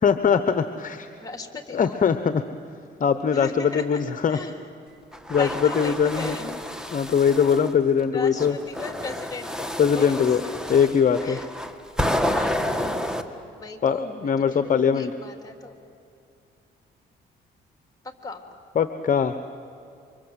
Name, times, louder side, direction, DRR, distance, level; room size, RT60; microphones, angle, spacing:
voice 1, 0.0-1.1 1.7-2.4 3.0-4.4 5.3-5.5 5.8-6.6 6.9-8.5 9.8-10.4 10.7-11.4 13.8-15.1 18.8-19.3, left 7 dB, 40° left, 10 dB, 1.0 m, -21 dB
voice 2, 1.2-2.0 3.3-4.0 4.3-4.6 5.3-6.7 8.1-11.5 12.3-12.5 13.5-15.8 18.2-18.4, left 3 dB, 20° left, 5 dB, 3.3 m, -37 dB
sound 1, 5.1-7.7 8.4-13.2, left 1 dB, 5° right, 1.7 m, -29 dB
29.0 x 25.0 x 8.2 m, 2.5 s
cardioid pair, 90°, 20 cm